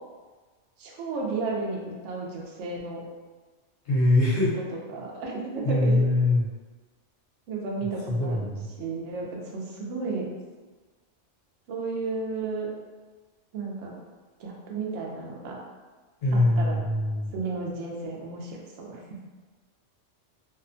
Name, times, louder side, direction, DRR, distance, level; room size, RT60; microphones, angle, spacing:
voice 1, 0.8-3.0 4.5-5.9 7.5-10.3 11.7-12.7 13.5-14.0 14.4-15.6 16.3-16.8 17.3-19.0, right 3 dB, 75° right, -2 dB, 0.9 m, -33 dB
voice 2, 3.9-4.5 5.6-6.4 8.1-8.5 16.2-17.3, left 2 dB, 70° left, -6 dB, 1.0 m, -22 dB
2.7 x 2.1 x 2.5 m, 1.3 s
omnidirectional pair, 1.3 m